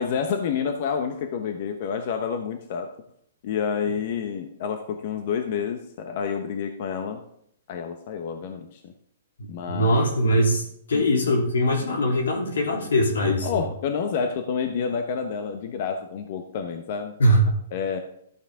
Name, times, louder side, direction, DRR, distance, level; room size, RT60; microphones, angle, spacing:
voice 1, 0.0-2.9 3.4-7.2 7.7-8.9 9.5-10.1 10.9-11.1 13.2-17.2 17.7-18.0, left 6 dB, 45° left, 6 dB, 1.1 m, -29 dB
voice 2, 9.4-13.6 17.2-17.4, equal, 90° left, 1 dB, 3.2 m, -22 dB
12.5 x 8.6 x 3.7 m, 0.68 s
hypercardioid pair, 155°, 0 cm